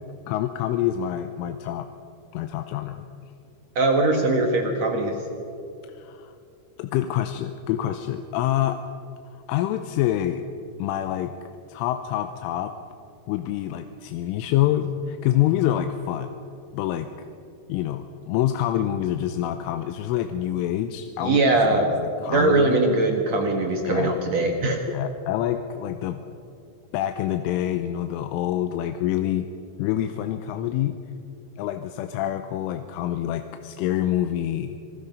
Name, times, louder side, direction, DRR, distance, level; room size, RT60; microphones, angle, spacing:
voice 1, 0.3-1.9 2.3-3.1 5.9-6.3 6.8-8.8 9.3-10.5 10.8-11.3 11.7-12.7 13.3-16.3 16.7-17.1 17.7-21.4 21.7-22.8 23.8-24.2 24.9-26.2 26.9-29.5 29.8-31.0 31.6-34.8, left 12 dB, 85° left, 7 dB, 3.3 m, -26 dB
voice 2, 3.7-5.2 21.2-21.9 22.2-24.8, right 2 dB, 65° right, 2 dB, 1.7 m, -21 dB
26.5 x 20.0 x 5.4 m, 2.5 s
omnidirectional pair, 5.6 m